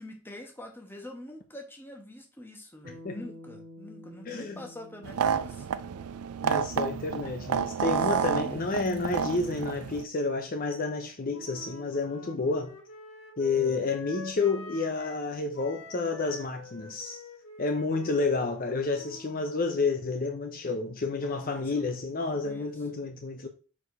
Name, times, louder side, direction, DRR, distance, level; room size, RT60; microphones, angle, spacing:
voice 1, 0.0-5.7 8.1-8.7 13.6-13.8 21.2-22.8, left 1 dB, 10° left, 1.1 m, -45 dB
Bass guitar, 2.8-7.2, left 1 dB, 40° right, 1.1 m, -50 dB
voice 2, 4.3-4.6 6.4-12.8 13.4-17.2 17.6-23.5, left 3 dB, 40° left, 0.6 m, -30 dB
sound 1, 5.0-10.0, right 7 dB, 85° right, 0.4 m, -30 dB
Wind instrument woodwind instrument, 11.3-15.3 15.5-19.5, left 2 dB, 75° left, 1.7 m, -47 dB
4.8 x 4.3 x 5.4 m
head